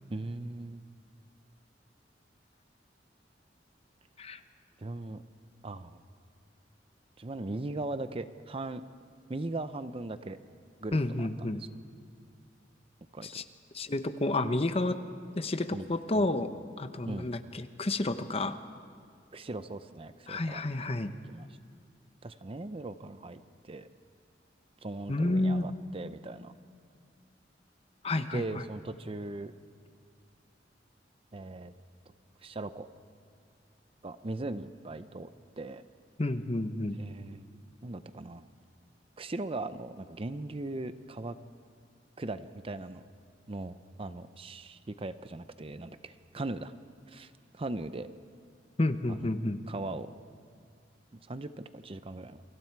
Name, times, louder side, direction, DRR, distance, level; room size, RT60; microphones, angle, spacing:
voice 1, 0.1-0.8 4.8-5.2 5.6-6.0 7.2-8.8 9.3-10.4 10.8-11.7 13.1-13.3 15.7-16.3 17.0-17.3 19.3-20.6 21.3-21.5 22.2-23.4 23.7-23.9 24.8-26.5 28.3-29.5 31.3-31.7 32.4-32.9 34.0-35.3 35.6-35.8 37.0-37.4 37.8-38.5 39.2-41.4 42.2-43.1 43.5-46.7 47.1-48.1 49.1-49.4 49.7-50.1 51.1-52.4, right 2 dB, 30° right, 12 dB, 0.6 m, -39 dB
voice 2, 10.9-11.6 13.2-13.4 13.7-15.0 15.4-16.5 16.8-18.6 20.3-21.1 25.1-25.7 28.0-28.4 36.2-37.0 48.8-49.6, left 2 dB, 35° left, 10 dB, 0.9 m, -30 dB
28.5 x 24.5 x 4.6 m, 2.2 s
head